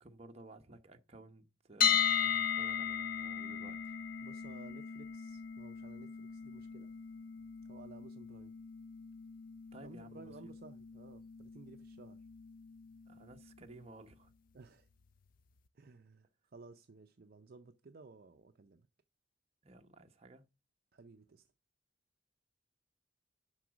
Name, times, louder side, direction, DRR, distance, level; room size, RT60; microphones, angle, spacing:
voice 1, 0.0-3.9 9.7-10.5 13.1-14.3 19.6-20.4, right 2 dB, 30° right, 0.9 m, -55 dB
sound 1, 1.8-13.7, left 8 dB, 45° left, 0.4 m, -37 dB
voice 2, 4.2-6.9 7.6-8.5 9.8-12.2 14.5-14.9 15.7-18.9 20.9-21.5, right 3 dB, 50° right, 0.5 m, -56 dB
11.0 x 3.9 x 6.1 m
head